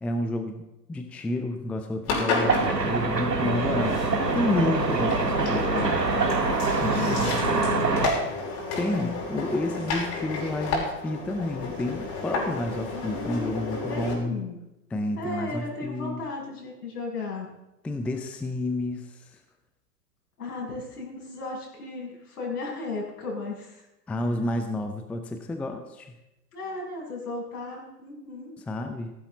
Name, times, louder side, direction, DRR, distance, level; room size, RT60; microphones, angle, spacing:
voice 1, 0.0-0.6 0.9-4.0 4.3-6.4 6.8-7.4 8.8-14.4 14.9-16.2 17.8-19.3 24.1-26.1 28.7-29.1, left 1 dB, 5° left, 7 dB, 0.5 m, -30 dB
Engine, 2.0-14.1, left 3 dB, 35° left, 5.9 m, -31 dB
sound 1, 2.4-8.1, right 4 dB, 85° right, 2.2 m, -25 dB
voice 2, 3.4-3.8 4.1-5.0 6.9-7.9 12.9-14.6 15.2-17.5 20.4-23.8 26.5-28.5, left 3 dB, 65° left, -2 dB, 7.5 m, -35 dB
16.5 x 16.0 x 4.0 m, 0.90 s
figure-of-eight pair, 110°, 48 cm